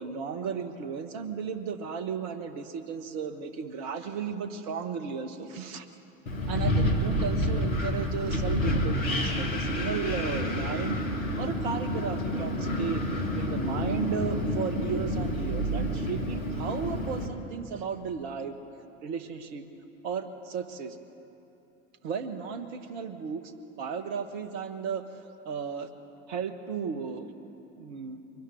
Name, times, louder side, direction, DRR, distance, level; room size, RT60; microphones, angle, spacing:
voice 1, 0.0-5.9 6.5-13.0 13.4-18.6 19.0-19.7 20.0-21.0 22.0-23.5 23.8-25.0 25.4-25.9 26.3-27.3 27.8-28.2, right 6 dB, 55° right, 9 dB, 1.6 m, -34 dB
Wind, 6.3-17.3, equal, 80° left, 1.9 m, -29 dB
23.0 x 14.0 x 9.5 m, 3.0 s
figure-of-eight pair, 70°, 40 cm